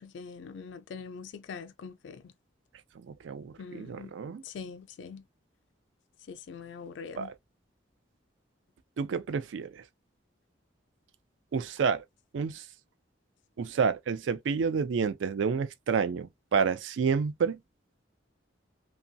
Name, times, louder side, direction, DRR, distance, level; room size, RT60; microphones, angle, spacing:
voice 1, 0.0-2.2 3.6-4.1 4.4-5.2 6.3-7.3, left 5 dB, 70° left, 0.4 m, -43 dB
voice 2, 3.1-4.4 7.2-7.3 9.0-9.8 11.5-12.0 12.3-12.6 13.6-17.6, right 6 dB, 75° right, 0.4 m, -29 dB
3.0 x 2.4 x 2.6 m
head